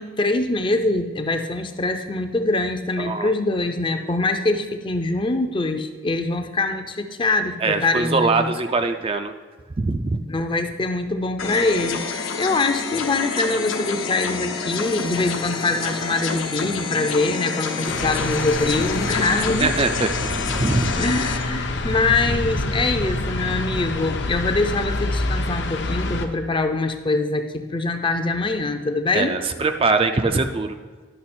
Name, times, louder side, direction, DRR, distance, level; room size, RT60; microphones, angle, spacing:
voice 1, 0.0-8.6 10.3-19.8 21.0-29.3, left 2 dB, 25° left, 7 dB, 0.5 m, -23 dB
voice 2, 3.0-3.3 7.6-9.3 9.8-10.2 17.9-18.2 19.6-20.9 29.1-30.8, right 3 dB, 25° right, 7 dB, 0.4 m, -22 dB
sound 1, 11.4-21.4, left 5 dB, 75° left, 1.0 m, -28 dB
sound 2, 17.9-26.3, left 2 dB, 60° left, 0.7 m, -26 dB
11.0 x 5.9 x 4.3 m, 1.5 s
head